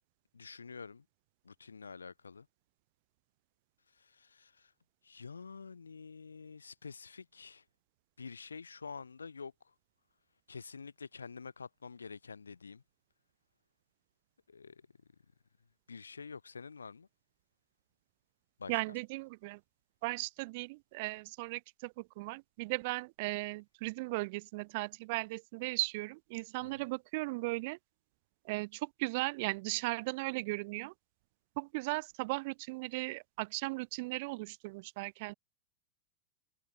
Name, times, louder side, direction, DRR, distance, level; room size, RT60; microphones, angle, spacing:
voice 1, 0.3-1.1 1.4-2.5 3.9-4.7 5.0-7.6 8.2-9.7 10.5-12.8 14.5-14.9 15.9-17.1 18.6-18.8 26.6-26.8, left 5 dB, 75° left, 3.7 m, -48 dB
voice 2, 18.7-19.6 20.0-27.8 28.4-30.9 31.6-35.3, right 25 dB, 50° right, 0.5 m, -37 dB
figure-of-eight pair, 90°, 0 cm